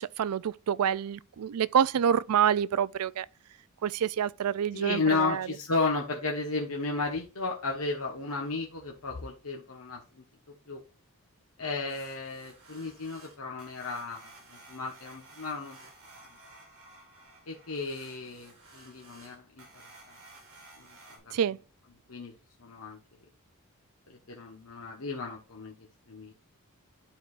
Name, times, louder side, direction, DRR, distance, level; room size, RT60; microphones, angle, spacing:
voice 1, 0.0-3.3 3.8-5.5 21.3-21.6, right 8 dB, 85° right, 0.4 m, -27 dB
voice 2, 4.7-10.8 11.6-14.3 14.7-15.8 17.5-19.6 21.1-21.3 22.1-22.3 22.6-23.0 24.1-25.7 26.1-26.3, left 3 dB, 75° left, 1.3 m, -33 dB
sound 1, 11.9-21.2, right 2 dB, 65° right, 3.9 m, -54 dB
12.0 x 4.7 x 2.5 m
head